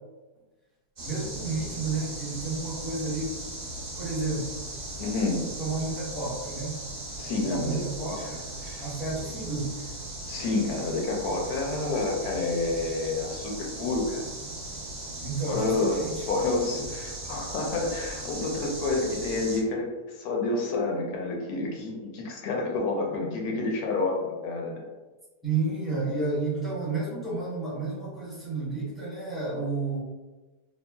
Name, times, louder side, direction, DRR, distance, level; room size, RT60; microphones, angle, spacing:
voice 1, 1.0-3.4 4.0-4.6 5.6-6.8 7.4-8.4 8.8-9.8 15.2-16.2 25.4-30.0, right 3 dB, ahead, -9 dB, 0.8 m, -31 dB
sound 1, 1.0-19.6, right 2 dB, 35° right, 0.8 m, -38 dB
voice 2, 5.0-5.5 7.2-7.8 8.1-8.3 8.6-8.8 10.3-14.3 15.4-24.8, left 3 dB, 75° left, 0 dB, 1.0 m, -29 dB
3.6 x 2.1 x 2.2 m, 1.2 s
omnidirectional pair, 1.7 m